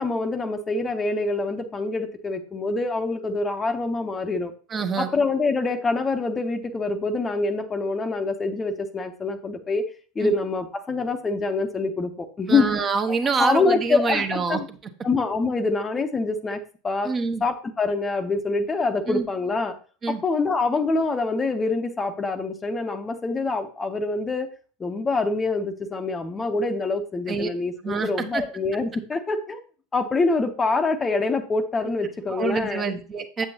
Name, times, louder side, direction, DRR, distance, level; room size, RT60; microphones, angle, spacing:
voice 1, 0.0-4.5 5.0-9.9 10.2-12.7 13.1-14.7 15.0-17.1 17.4-19.8 20.1-24.5 24.8-29.6 29.9-32.8, left 3 dB, 20° left, 8 dB, 0.7 m, -25 dB
voice 2, 4.7-5.1 10.2-10.3 12.5-14.8 17.0-17.4 19.1-19.3 20.0-20.2 27.3-27.5 27.8-28.4 31.8-31.9 32.3-33.5, right 4 dB, 30° right, 7 dB, 0.9 m, -26 dB
7.7 x 7.7 x 2.8 m, 0.39 s
figure-of-eight pair, 75°, 0 cm